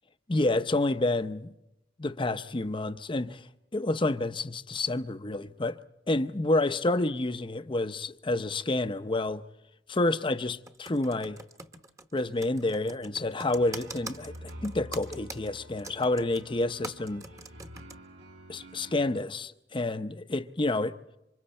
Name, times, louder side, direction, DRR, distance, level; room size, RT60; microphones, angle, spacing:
voice 1, 0.3-1.5 2.0-3.4 3.7-5.8 6.1-9.4 9.9-11.4 12.1-17.2 18.5-21.0, left 2 dB, 25° left, 0.7 m, -29 dB
Computer keyboard, 10.7-18.0, right 2 dB, 15° right, 1.1 m, -43 dB
sound 1, 13.5-19.3, equal, 75° right, 3.9 m, -48 dB
27.5 x 25.0 x 4.3 m
head